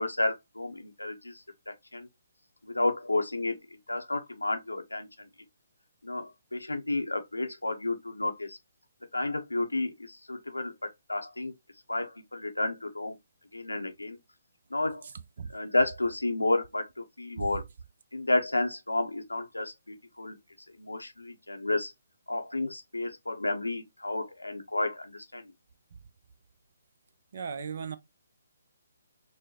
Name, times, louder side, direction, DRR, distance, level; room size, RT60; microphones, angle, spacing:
voice 1, 0.0-2.1 2.6-3.6 3.9-5.3 6.0-8.6 9.1-10.7 11.1-11.5 11.9-13.2 13.5-14.2 14.7-15.0 15.5-17.6 18.1-20.4 20.8-21.9 22.3-25.5, left 2 dB, 85° left, 0.6 m, -31 dB
voice 2, 27.3-28.0, right 6 dB, 55° right, 0.5 m, -36 dB
4.6 x 2.1 x 2.8 m
figure-of-eight pair, 135°, 0 cm